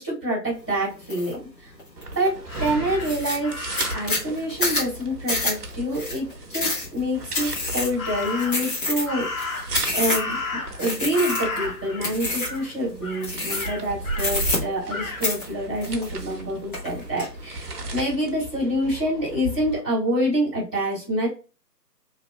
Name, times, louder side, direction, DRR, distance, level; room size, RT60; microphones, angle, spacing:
voice 1, 0.0-1.4 2.1-3.6 3.9-9.5 9.9-21.3, equal, 5° left, -16 dB, 0.7 m, -27 dB
sound 1, 1.1-1.3 1.8-2.3 2.6-2.7 3.0-10.4 10.8-11.6 12.0-12.6 13.2-13.8 14.1-14.9 15.2-16.4 16.7-17.3, left 2 dB, 30° left, 1.1 m, -27 dB
sound 2, 2.0-19.8, right 2 dB, 65° right, 0.8 m, -36 dB
Crow, 2.5-4.2 8.0-8.7 9.1-10.9 11.1-12.1 12.4-12.7 13.0-14.3 14.9-15.2, left 3 dB, 55° left, 1.0 m, -33 dB
2.9 x 2.2 x 2.9 m, 0.33 s
figure-of-eight pair, 145°, 50 cm